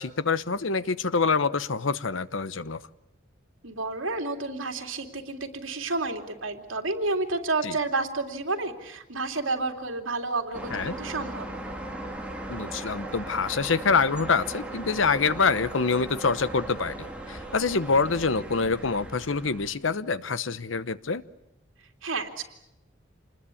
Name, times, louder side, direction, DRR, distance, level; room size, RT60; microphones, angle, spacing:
voice 1, 0.0-2.8 7.6-7.8 10.7-10.9 12.5-21.2, left 4 dB, 80° left, 15 dB, 0.9 m, -26 dB
voice 2, 3.6-11.5 22.0-22.4, right 3 dB, 90° right, 4 dB, 2.9 m, -30 dB
sound 1, 10.5-19.7, right 1 dB, 5° right, 3.4 m, -38 dB
27.5 x 20.5 x 8.5 m, 0.89 s
head